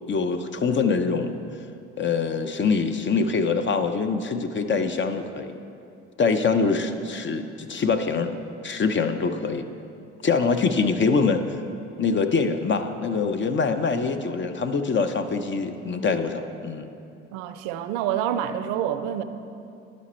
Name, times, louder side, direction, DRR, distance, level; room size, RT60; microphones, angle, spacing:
voice 1, 0.1-1.3 2.0-5.6 6.2-8.4 8.6-9.7 10.2-11.4 12.0-16.9, left 4 dB, 35° left, 8 dB, 0.6 m, -24 dB
voice 2, 17.3-19.2, right 10 dB, 85° right, 10 dB, 0.5 m, -27 dB
11.0 x 5.2 x 4.3 m, 2.6 s
hypercardioid pair, 60°, 33 cm